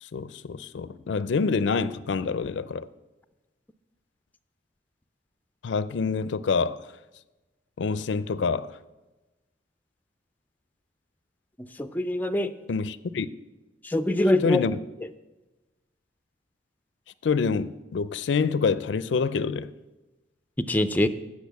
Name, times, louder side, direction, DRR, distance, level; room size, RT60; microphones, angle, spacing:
voice 1, 0.0-2.9 5.6-6.8 7.8-8.8 12.7-13.3 14.4-14.8 17.2-19.7, left 5 dB, 85° left, 0.4 m, -26 dB
voice 2, 11.6-12.5 13.8-14.6 20.6-21.1, left 1 dB, 10° left, 0.4 m, -24 dB
8.4 x 6.4 x 8.1 m
head